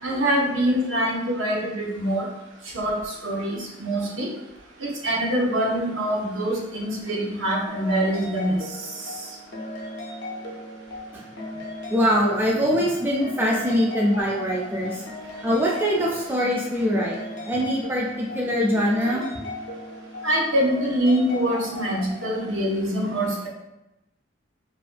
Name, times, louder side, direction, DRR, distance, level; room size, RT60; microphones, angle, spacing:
voice 1, 0.0-2.3 2.7-4.3 4.8-8.6 9.0-9.1 20.2-23.5, right 1 dB, 75° right, -3 dB, 0.6 m, -24 dB
henri le duc, 7.7-22.4, left 1 dB, 65° left, 0.5 m, -37 dB
voice 2, 11.9-15.0 15.4-17.2 17.5-19.2, equal, 10° right, -4 dB, 0.3 m, -23 dB
2.4 x 2.1 x 2.4 m, 0.93 s
head